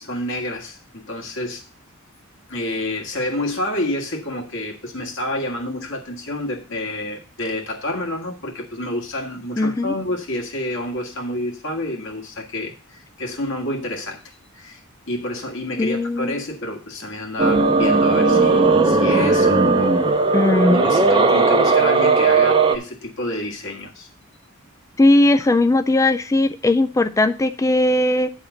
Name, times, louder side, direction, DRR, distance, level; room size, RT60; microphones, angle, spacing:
voice 1, 0.0-1.6 2.5-14.2 14.5-14.8 15.1-20.4 20.7-24.1, left 1 dB, 60° left, 1 dB, 1.6 m, -28 dB
voice 2, 9.6-9.9 15.8-16.3 20.3-20.8 25.0-28.3, left 2 dB, 15° left, 10 dB, 0.3 m, -18 dB
sound 1, 17.4-22.8, right 3 dB, 25° right, 0.7 m, -16 dB
9.2 x 3.6 x 6.8 m, 0.37 s
head